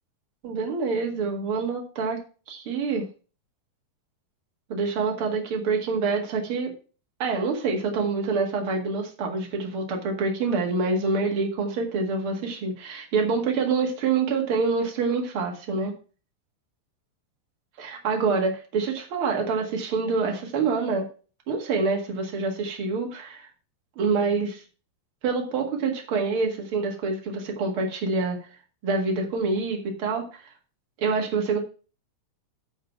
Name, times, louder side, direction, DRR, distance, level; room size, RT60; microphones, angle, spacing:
voice 1, 0.4-2.2 2.5-3.0 4.7-6.7 7.2-15.9 17.8-21.1 21.5-23.5 24.0-24.6 25.2-28.4 28.8-30.5 31.0-31.6, right 4 dB, 50° right, 1 dB, 1.7 m, -26 dB
11.0 x 4.1 x 5.8 m, 0.36 s
omnidirectional pair, 5.0 m